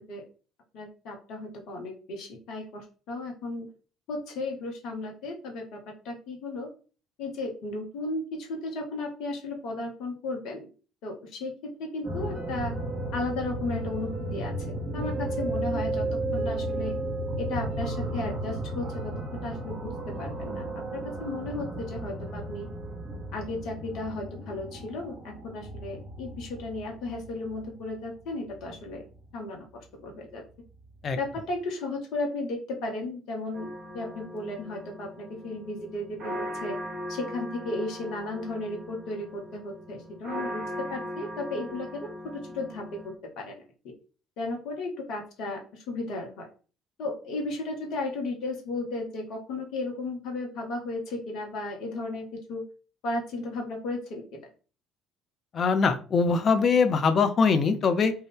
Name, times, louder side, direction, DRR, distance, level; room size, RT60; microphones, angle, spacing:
voice 1, 0.7-3.7 4.1-5.8 6.0-6.7 7.2-10.7 11.0-11.5 11.8-12.7 13.1-14.5 14.9-16.1 16.3-16.9 17.4-20.6 20.9-22.7 23.3-29.0 29.3-30.4 31.1-33.7 33.9-36.8 37.1-42.8 43.4-43.5 44.4-46.5 47.0-52.6 53.0-54.2, left 2 dB, 55° left, 1 dB, 0.8 m, -34 dB
sound 1, 12.0-29.3 30.9-31.0 31.4-31.5, right 1 dB, 30° right, 0.9 m, -34 dB
sound 2, 33.5-43.1, equal, 50° right, 0.8 m, -39 dB
voice 2, 55.5-58.1, left 5 dB, 40° left, 8 dB, 0.4 m, -22 dB
2.5 x 2.2 x 3.4 m, 0.37 s
figure-of-eight pair, 50°, 0 cm